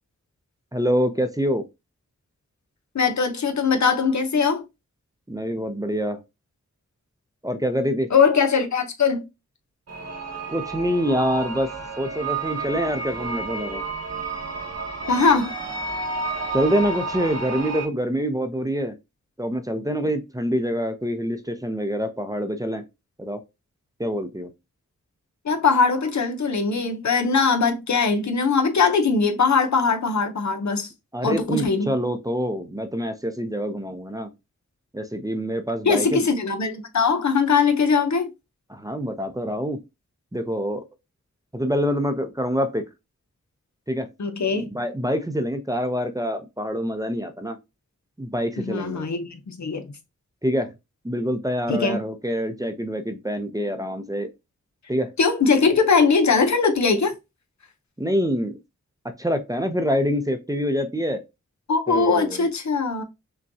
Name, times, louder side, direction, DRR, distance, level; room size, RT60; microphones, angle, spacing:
voice 1, 0.7-1.6 5.3-6.2 7.4-8.1 10.5-11.7 12.0-13.8 16.5-18.9 19.4-22.8 23.2-23.4 24.0-24.5 31.1-34.3 34.9-36.2 38.7-39.8 40.3-40.8 41.5-42.8 43.9-44.1 44.5-47.6 48.2-49.1 50.4-50.7 51.0-54.3 54.9-55.1 58.0-58.6 59.2-61.2 61.9-62.5, equal, 10° right, 0.6 m, -26 dB
voice 2, 2.9-4.6 8.1-9.2 15.1-15.5 25.4-30.9 31.2-31.9 35.9-38.3 44.2-44.7 48.6-49.8 51.7-52.0 55.2-57.1 61.7-63.0, left 5 dB, 70° left, 0.8 m, -21 dB
sound 1, 9.9-17.9, right 3 dB, 60° right, 1.0 m, -31 dB
5.4 x 2.3 x 2.7 m
wide cardioid pair, 55°, 29 cm